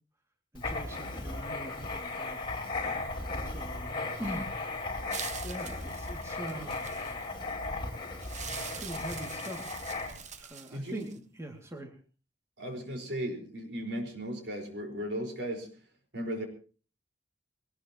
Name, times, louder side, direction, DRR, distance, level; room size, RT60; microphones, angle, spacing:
Writing, 0.5-10.4, left 3 dB, 30° left, 4.5 m, -36 dB
voice 1, 0.5-2.4 3.4-3.9 4.2-4.6 5.4-7.1 8.6-9.8 10.4-12.0, right 1 dB, 15° right, 2 dB, 2.5 m, -42 dB
sound 1, 5.1-7.3 8.2-11.2, right 8 dB, 40° right, 1.0 m, -44 dB
voice 2, 10.7-11.1 12.6-15.7 16.1-16.4, equal, 70° right, 3 dB, 5.0 m, -36 dB
22.0 x 19.5 x 3.1 m, 0.37 s
head